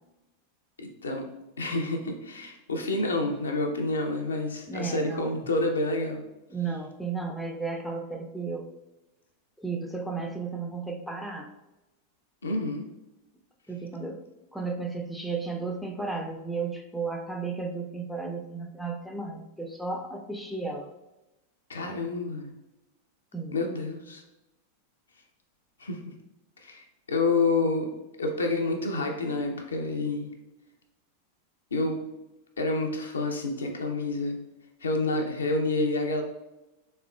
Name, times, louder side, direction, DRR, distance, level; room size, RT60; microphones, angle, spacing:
voice 1, 0.8-1.3 1.6-6.2 12.4-12.8 21.7-22.5 23.5-24.2 25.8-26.0 26.6-27.9 28.2-30.3 31.7-32.0 32.6-34.4 34.8-36.2, left 2 dB, 70° left, 3 dB, 0.5 m, -28 dB
voice 2, 4.7-5.4 6.5-8.7 9.6-11.5 13.7-14.2 14.5-20.9 23.3-23.6, right 4 dB, ahead, 3 dB, 0.4 m, -34 dB
3.4 x 3.2 x 2.2 m, 0.98 s
figure-of-eight pair, 90°, 0 cm